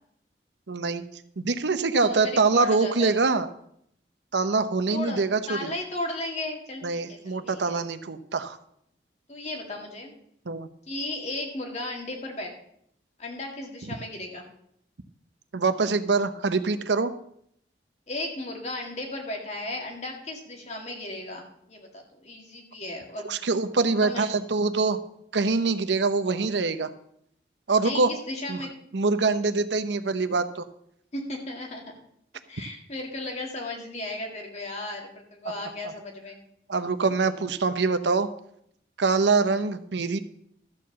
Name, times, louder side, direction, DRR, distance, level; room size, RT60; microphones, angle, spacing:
voice 1, 0.7-1.0 1.4-3.5 4.3-5.7 6.8-8.6 10.5-10.7 13.9-14.0 15.5-17.1 23.2-25.0 25.3-26.9 27.7-28.1 28.5-28.6 28.9-30.6 36.7-38.3 39.0-40.2, right 4 dB, 90° right, 11 dB, 0.7 m, -24 dB
voice 2, 1.9-3.2 4.9-5.2 5.5-7.8 9.3-10.1 10.9-12.5 13.2-14.5 18.1-23.3 24.0-24.3 27.8-28.7 31.1-31.9 32.5-36.4 39.5-39.6, left 2 dB, 40° left, 1 dB, 2.1 m, -35 dB
13.0 x 4.6 x 7.3 m, 0.72 s
head